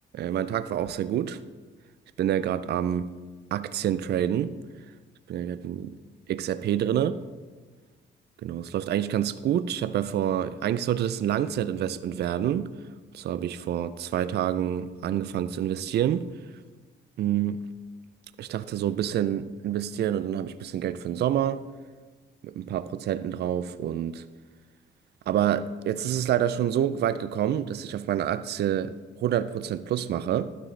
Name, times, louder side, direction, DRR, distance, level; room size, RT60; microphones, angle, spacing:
voice 1, 0.1-1.4 2.2-3.1 3.5-4.6 5.3-6.0 6.3-7.2 8.4-12.7 13.1-16.3 17.2-17.7 18.4-21.6 22.4-24.3 25.3-30.5, right 10 dB, 55° right, 0.4 m, -27 dB
12.0 x 6.2 x 3.3 m
cardioid pair, 90°, 20 cm